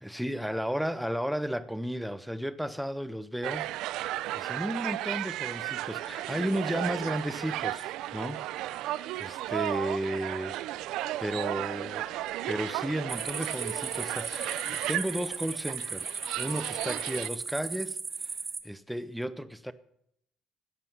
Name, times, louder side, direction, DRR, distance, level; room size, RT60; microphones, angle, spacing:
voice 1, 0.0-3.7 4.3-8.4 8.8-12.1 12.5-18.4 18.6-19.7, equal, ahead, 0.5 m, -34 dB
sound 1, 3.4-17.3, right 15 dB, 70° right, 0.5 m, -34 dB
sound 2, 13.1-18.6, right 5 dB, 25° right, 1.3 m, -36 dB
15.5 x 9.6 x 5.6 m
cardioid pair, 160°, 0 cm